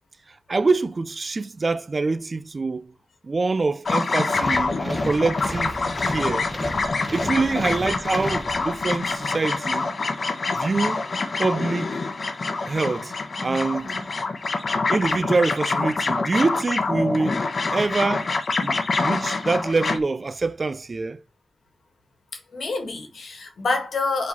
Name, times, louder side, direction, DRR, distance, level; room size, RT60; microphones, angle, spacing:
voice 1, 0.5-2.9 3.2-5.8 6.0-6.5 7.1-9.9 10.5-11.0 11.4-12.0 12.7-13.1 13.4-13.9 14.9-21.2, right 3 dB, 35° right, 0.4 m, -25 dB
sound 1, 3.8-20.0, left 3 dB, 50° left, 1.0 m, -26 dB
sound 2, 4.3-9.0, equal, ahead, 0.8 m, -34 dB
voice 2, 7.2-7.6 13.4-14.1 22.3-24.3, left 3 dB, 70° left, 1.8 m, -29 dB
5.0 x 4.0 x 5.4 m
wide cardioid pair, 130°, 0 cm